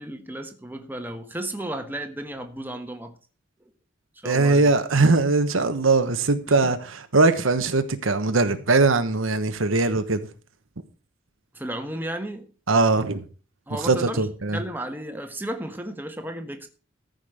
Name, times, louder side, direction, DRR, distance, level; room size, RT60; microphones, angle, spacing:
voice 1, 0.0-3.1 4.2-4.7 6.5-6.7 11.5-12.5 13.7-14.2 14.5-16.7, right 1 dB, 10° right, 1.3 m, -33 dB
voice 2, 4.2-10.3 12.7-13.2 13.8-14.6, right 3 dB, 90° right, 1.2 m, -21 dB
14.0 x 5.4 x 6.5 m
head